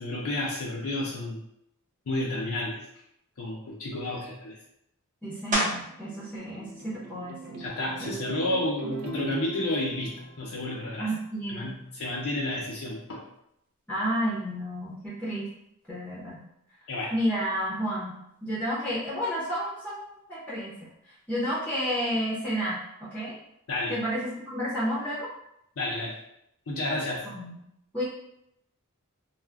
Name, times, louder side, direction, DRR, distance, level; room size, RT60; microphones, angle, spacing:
voice 1, 0.0-1.4 2.1-2.8 3.4-4.6 7.6-11.1 11.5-13.2 16.9-17.1 23.7-23.9 25.8-26.1 26.7-27.3, left 1 dB, 65° left, -4 dB, 0.5 m, -31 dB
voice 2, 5.2-7.6 8.0-8.2 11.0-11.7 13.9-15.5 15.9-16.4 17.1-20.9 21.3-23.4 23.9-25.3 27.2-27.6 27.9-28.0, equal, 5° left, -9 dB, 0.6 m, -31 dB
sound 1, 5.5-6.1 6.7-11.1 11.6-16.8 17.1-22.7, equal, 35° right, 0.8 m, -39 dB
sound 2, 5.8-11.2, right 4 dB, 85° right, 0.4 m, -42 dB
2.3 x 2.1 x 3.3 m, 0.79 s
head